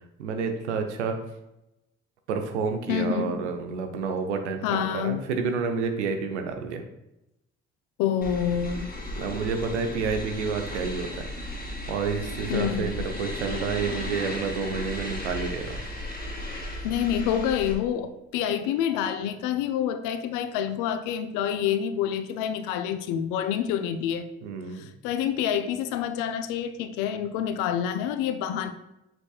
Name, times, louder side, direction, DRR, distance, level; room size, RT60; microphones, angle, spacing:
voice 1, 0.2-1.2 2.3-6.8 9.2-11.1 11.9-15.8 24.4-24.9, right 5 dB, 80° right, 6 dB, 0.7 m, -29 dB
voice 2, 2.9-3.3 4.6-5.2 8.0-8.9 12.5-13.1 16.8-24.3 24.7-28.7, left 9 dB, 65° left, 11 dB, 0.6 m, -27 dB
sound 1, 8.2-17.7, left 1 dB, 25° left, 2.1 m, -35 dB
7.3 x 6.2 x 2.3 m, 0.88 s
figure-of-eight pair, 45°, 34 cm